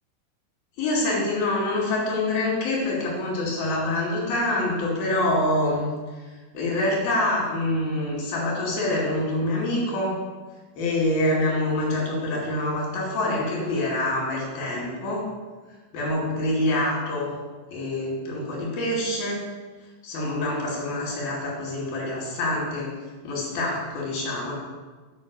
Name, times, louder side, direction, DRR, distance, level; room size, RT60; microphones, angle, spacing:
voice 1, 0.8-5.9 6.5-10.2 10.8-15.2 15.9-17.3 17.7-19.4 20.0-22.9 23.2-24.5, left 1 dB, 90° left, -4 dB, 4.3 m, -26 dB
10.5 x 5.4 x 6.9 m, 1.3 s
omnidirectional pair, 4.1 m